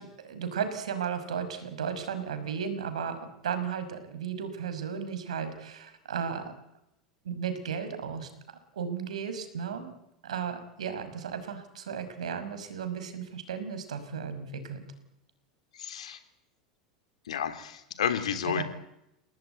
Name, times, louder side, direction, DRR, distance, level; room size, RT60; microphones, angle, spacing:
voice 1, 0.0-3.2 3.4-6.5 7.2-8.3 8.8-9.9 10.2-14.8 18.5-18.6, right 7 dB, 75° right, 9 dB, 5.7 m, -34 dB
voice 2, 15.8-16.2 17.3-18.6, left 9 dB, 75° left, 9 dB, 3.4 m, -31 dB
29.5 x 19.0 x 9.4 m, 0.84 s
hypercardioid pair, 85°, 4 cm